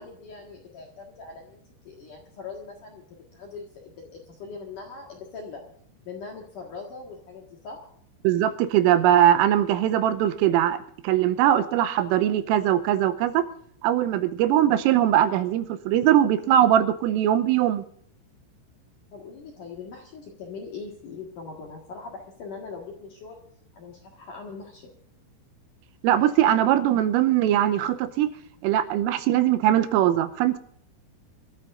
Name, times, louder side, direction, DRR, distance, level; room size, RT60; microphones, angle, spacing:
voice 1, 0.0-5.6 6.1-7.9 19.1-23.4 23.8-24.9, left 4 dB, 60° left, 0 dB, 2.3 m, -41 dB
voice 2, 8.2-10.8 11.0-13.5 13.8-17.8 26.0-28.3 28.6-30.6, right 11 dB, 80° right, 10 dB, 3.3 m, -21 dB
26.0 x 13.0 x 2.6 m, 0.66 s
omnidirectional pair, 6.0 m